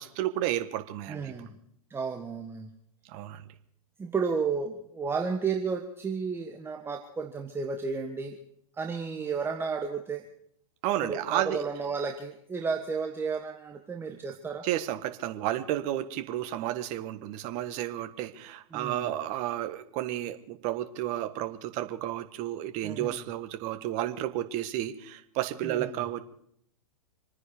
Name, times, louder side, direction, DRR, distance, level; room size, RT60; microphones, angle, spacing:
voice 1, 0.0-1.3 3.1-3.4 10.8-11.6 14.6-26.2, right 13 dB, 40° right, 8 dB, 1.5 m, -32 dB
voice 2, 1.1-1.5 1.9-2.7 4.0-8.4 8.8-10.2 11.0-14.7 18.7-19.1 22.8-23.2 25.6-26.0, right 5 dB, 10° right, 3 dB, 1.3 m, -32 dB
26.5 x 9.9 x 5.1 m, 0.69 s
hypercardioid pair, 110°, 18 cm